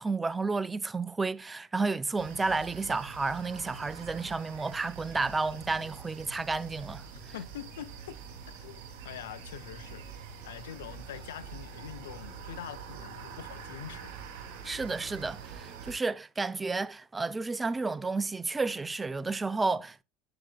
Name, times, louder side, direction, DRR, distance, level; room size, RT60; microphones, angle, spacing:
voice 1, 0.0-7.1 14.6-20.0, right 3 dB, 15° right, 0.4 m, -31 dB
sound 1, 2.2-15.9, right 6 dB, 60° right, 2.7 m, -45 dB
voice 2, 7.3-8.2 8.6-8.8 9.0-10.1 10.4-14.1, left 11 dB, 75° left, 0.6 m, -44 dB
8.5 x 7.8 x 2.2 m
hypercardioid pair, 75°, 0 cm